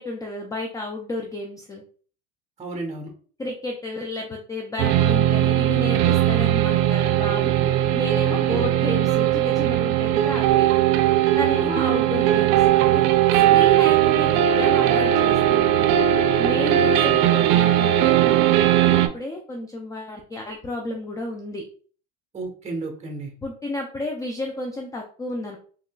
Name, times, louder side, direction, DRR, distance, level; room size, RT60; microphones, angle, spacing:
voice 1, 0.0-1.8 3.4-10.7 11.3-13.0 13.5-15.9 16.4-21.6 23.4-25.6, left 2 dB, 10° left, 2 dB, 0.3 m, -32 dB
voice 2, 2.6-3.1 8.5-8.6 11.5-11.9 16.8-17.2 22.3-23.3, right 2 dB, 20° right, 3 dB, 1.1 m, -33 dB
sound 1, 4.8-19.1, right 12 dB, 70° right, 0.5 m, -19 dB
3.7 x 2.9 x 2.2 m, 0.43 s
supercardioid pair, 120°, 30 cm